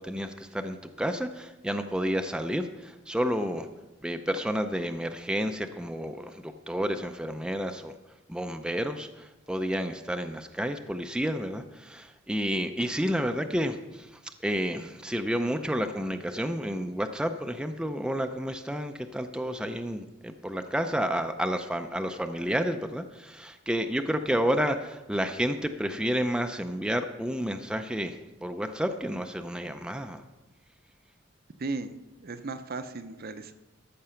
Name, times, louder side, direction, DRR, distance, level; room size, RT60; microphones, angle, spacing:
voice 1, 0.0-3.7 4.0-8.0 8.3-14.1 14.4-30.2, equal, 5° right, 7 dB, 0.5 m, -30 dB
voice 2, 31.6-33.5, right 3 dB, 50° right, 10 dB, 0.7 m, -36 dB
13.5 x 6.7 x 5.7 m, 1.1 s
head